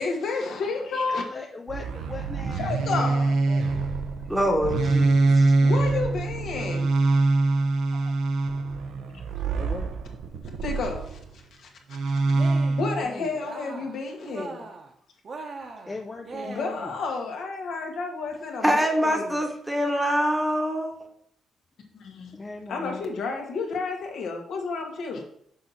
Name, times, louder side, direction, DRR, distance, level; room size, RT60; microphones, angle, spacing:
voice 1, 0.0-1.2 2.5-3.3 5.6-6.8 7.9-8.1 10.6-11.2 11.6-11.7 12.8-14.6 16.4-19.3 21.9-22.4 22.7-25.2, left 4 dB, 70° left, 1 dB, 1.6 m, -31 dB
voice 2, 1.1-3.9 6.7-6.9 8.9-9.2 9.5-9.9 13.0-13.3 15.9-16.9 22.3-23.1, left 3 dB, 20° left, 2 dB, 0.6 m, -39 dB
sound 1, 1.7-11.2 11.9-13.0, right 3 dB, 75° right, 0.8 m, -24 dB
voice 3, 4.3-5.5 18.6-21.1, equal, 10° right, 3 dB, 1.1 m, -25 dB
Cheering, 12.3-12.9 13.3-14.0 14.2-14.9 15.2-17.0, right 3 dB, 45° right, 1.0 m, -40 dB
6.5 x 4.2 x 5.8 m, 0.67 s
cardioid pair, 125°, 0 cm